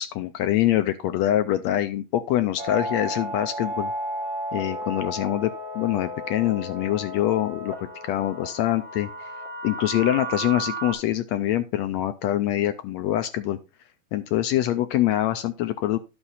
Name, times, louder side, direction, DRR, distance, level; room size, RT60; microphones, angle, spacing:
voice 1, 0.0-3.9 4.5-7.7 8.1-9.1 9.6-13.6 14.1-16.0, left 13 dB, 80° left, 9 dB, 1.6 m, -24 dB
sound 1, 2.6-10.9, right 1 dB, 20° right, 3.5 m, -33 dB
11.5 x 5.8 x 4.0 m, 0.28 s
omnidirectional pair, 3.6 m